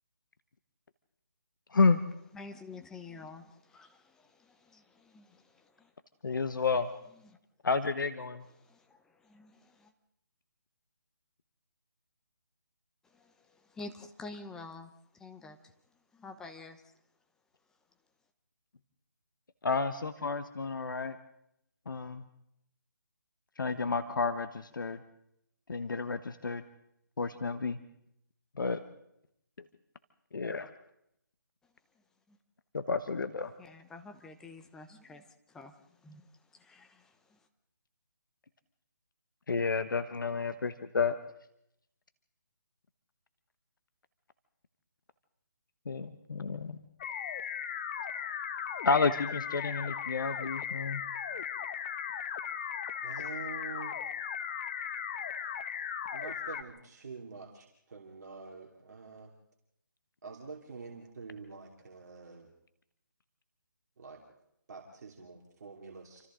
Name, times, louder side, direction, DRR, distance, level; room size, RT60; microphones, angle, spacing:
voice 1, 1.7-2.0 6.2-6.9 7.6-8.5 19.6-21.2 21.9-22.3 23.6-25.0 25.7-26.6 27.2-27.8 28.6-28.8 30.3-30.7 32.7-33.5 39.5-41.2 45.9-46.8 48.8-51.0, left 4 dB, 70° left, 11 dB, 1.2 m, -30 dB
voice 2, 2.3-5.9 6.5-6.6 7.2-7.4 8.6-9.9 13.0-15.7 16.1-16.8 31.6-32.4 33.6-37.5, left 3 dB, 5° left, 6 dB, 0.7 m, -50 dB
sound 1, 47.0-56.6, left 8 dB, 30° left, 1.0 m, -37 dB
voice 3, 53.0-53.9 56.1-59.3 60.2-62.5 64.0-64.3 64.7-66.3, right 4 dB, 50° right, -1 dB, 2.8 m, -46 dB
28.0 x 25.5 x 3.8 m, 0.78 s
figure-of-eight pair, 160°, 11 cm